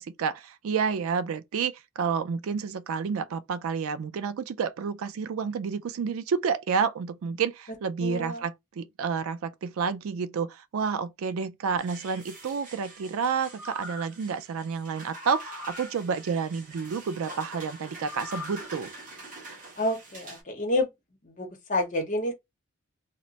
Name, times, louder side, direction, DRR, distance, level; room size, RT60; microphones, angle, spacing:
voice 1, 0.0-18.9, right 6 dB, 65° right, 0.4 m, -30 dB
voice 2, 8.0-8.4 19.8-20.9 21.2-22.3, left 1 dB, 35° left, 0.9 m, -29 dB
sound 1, 11.8-20.4, right 2 dB, 35° right, 0.8 m, -45 dB
sound 2, 13.4-14.2 15.2-15.9 18.0-18.7 19.2-19.3, left 2 dB, ahead, 0.8 m, -41 dB
2.5 x 2.1 x 4.0 m
head